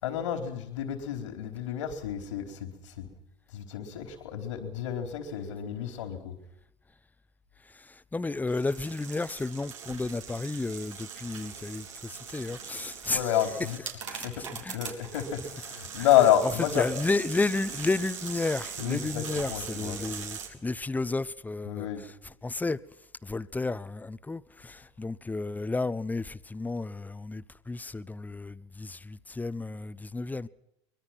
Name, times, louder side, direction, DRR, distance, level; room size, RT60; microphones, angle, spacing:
voice 1, 0.0-3.1 3.5-6.3 13.1-13.8 14.2-16.9 18.8-20.0 21.6-22.0, left 10 dB, 80° left, 4.3 m, -29 dB
voice 2, 7.7-13.3 14.1-14.8 16.0-16.1 16.4-22.8 23.2-30.5, left 3 dB, 10° left, 0.9 m, -32 dB
sound 1, 8.5-20.5, right 7 dB, 90° right, 4.2 m, -41 dB
24.0 x 22.0 x 6.1 m
hypercardioid pair, 90°, 16 cm